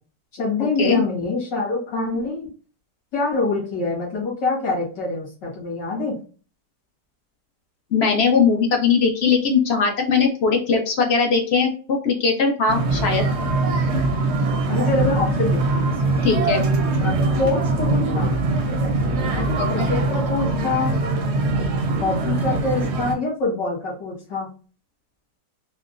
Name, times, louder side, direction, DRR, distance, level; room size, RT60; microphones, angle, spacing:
voice 1, 0.3-2.5 3.1-6.2 12.8-13.1 14.7-16.2 17.0-19.0 19.4-20.9 22.0-24.5, left 3 dB, 85° left, -5 dB, 2.1 m, -25 dB
voice 2, 7.9-11.7 12.0-13.2 16.2-16.6 19.6-19.9, left 5 dB, 65° left, 2 dB, 0.6 m, -19 dB
sound 1, 12.7-23.1, right 2 dB, 65° right, 0.7 m, -22 dB
4.3 x 2.0 x 2.5 m, 0.38 s
omnidirectional pair, 1.9 m